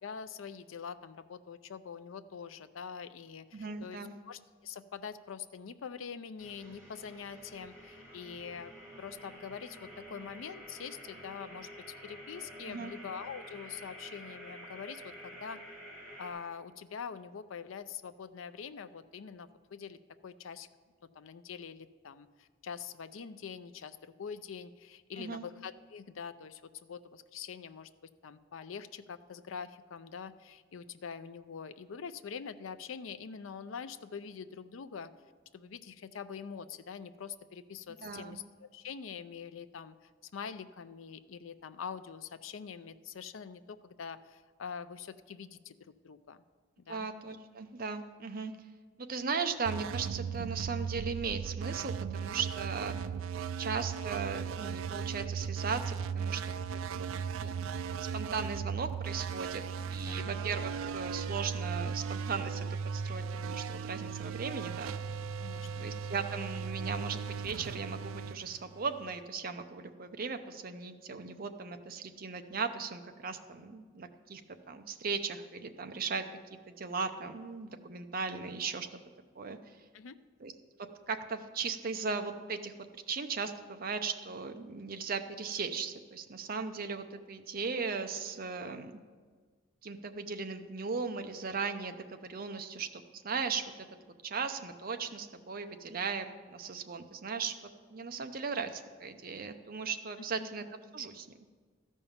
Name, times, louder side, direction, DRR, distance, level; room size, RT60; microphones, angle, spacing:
voice 1, 0.0-4.0 4.3-11.7 12.0-15.6 16.2-20.7 21.1-27.9 28.2-35.1 35.5-39.9 40.3-46.4 46.8-47.1 60.1-60.3 65.4-65.9 79.9-80.2 100.2-100.5, left 6 dB, 80° left, 12 dB, 0.5 m, -44 dB
voice 2, 3.5-4.1 12.7-12.9 25.2-25.4 38.0-38.4 46.9-48.5 49.0-53.0 53.6-56.4 56.9-57.1 57.4-57.5 58.0-59.6 59.9-62.7 62.9-65.1 65.8-74.4 74.7-76.2 76.7-78.9 79.3-79.6 80.4-80.5 81.1-82.7 83.1-88.9 89.8-93.7 94.2-97.5 97.9-100.7 100.9-101.3, right 5 dB, 45° right, 7 dB, 0.6 m, -37 dB
sound 1, 6.4-16.3, equal, 5° left, 3.1 m, -49 dB
sound 2, 49.6-69.2, right 6 dB, 90° right, 0.3 m, -37 dB
13.0 x 5.5 x 7.1 m, 1.5 s
head